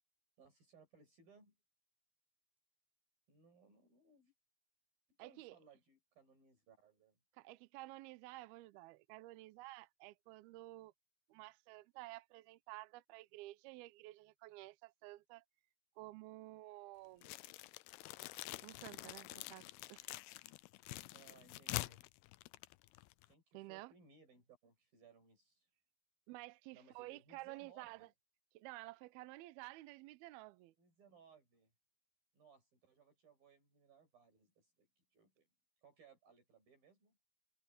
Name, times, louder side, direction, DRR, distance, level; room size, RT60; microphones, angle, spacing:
voice 1, 0.4-1.5 3.3-4.3 5.2-7.2 21.1-22.0 23.3-25.7 26.7-28.1 30.8-31.7 32.3-35.5 35.8-37.2, right 5 dB, 50° right, 7.8 m, -66 dB
voice 2, 5.2-5.6 7.4-10.9 11.3-15.4 16.0-17.3 18.6-20.1 23.5-23.9 26.3-28.1 28.5-30.7, right 19 dB, 85° right, 2.2 m, -52 dB
sound 1, 17.2-23.3, left 19 dB, 85° left, 2.2 m, -47 dB
omnidirectional pair, 5.3 m